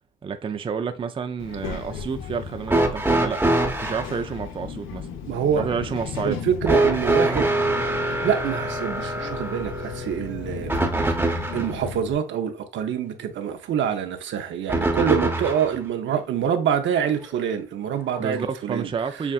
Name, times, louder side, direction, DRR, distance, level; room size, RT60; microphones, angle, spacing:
voice 1, 0.2-3.4 3.8-5.1 5.6-6.4 18.2-19.3, right 6 dB, 25° right, 0.4 m, -29 dB
Child speech kid speaking, 1.4-12.1, left 7 dB, 85° left, 0.7 m, -36 dB
sound 1, 2.7-4.1 6.7-11.8 14.7-15.8 17.0-17.1 18.1-18.2, right 2 dB, 10° right, 0.8 m, -24 dB
voice 2, 5.3-5.7 6.3-7.5 8.2-10.7 11.5-18.9, right 8 dB, 70° right, 0.7 m, -25 dB
7.0 x 2.5 x 2.3 m
cardioid pair, 90°, 20 cm